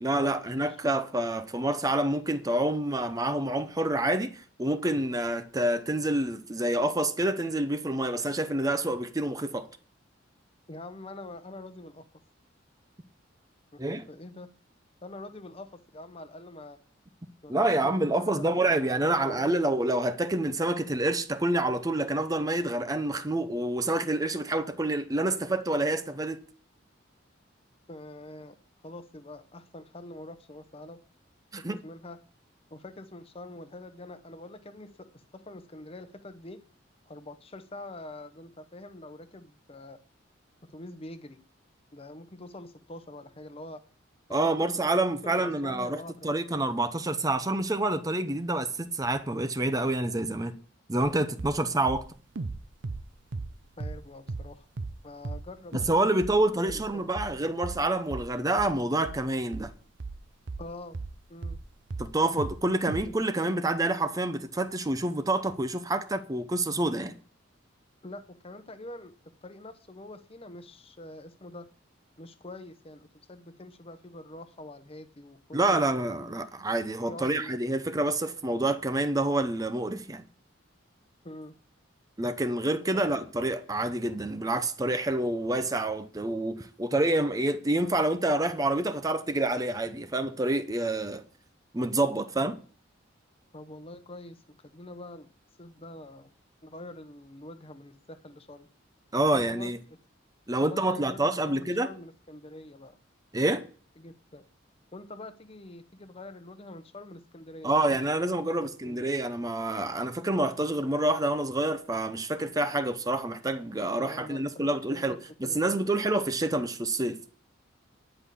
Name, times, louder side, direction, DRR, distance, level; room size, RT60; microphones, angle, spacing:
voice 1, 0.0-9.7 13.8-14.0 17.5-26.4 31.5-31.8 44.3-50.5 50.9-52.0 55.7-59.7 62.0-67.1 75.5-80.2 82.2-91.2 91.7-92.6 99.1-99.8 100.5-101.9 103.3-103.6 107.6-117.2, right 2 dB, 20° right, 0.7 m, -27 dB
voice 2, 10.7-12.0 13.7-14.5 15.0-16.8 17.4-19.6 27.9-28.5 28.8-31.0 31.6-32.2 32.7-36.6 37.1-40.0 40.6-41.4 41.9-43.8 44.3-44.8 45.2-46.3 53.8-54.6 55.0-56.2 56.6-57.0 60.6-61.0 61.3-61.6 63.1-63.2 68.0-71.7 72.2-75.9 77.1-77.5 81.2-81.5 82.9-83.0 93.5-95.3 95.6-96.3 96.6-98.7 99.3-99.7 100.6-103.0 104.0-104.5 104.9-109.2 114.0-114.4 114.9-115.0 115.4-115.9, left 1 dB, 30° left, 0.9 m, -45 dB
sound 1, 51.0-51.1 51.4-51.6 51.9-54.0 54.3-54.5 54.8-55.0 55.2-55.5 55.7-56.0 56.2-61.7 61.9-62.6 62.9-63.1, right 3 dB, 65° right, 0.7 m, -37 dB
10.5 x 5.6 x 8.5 m
head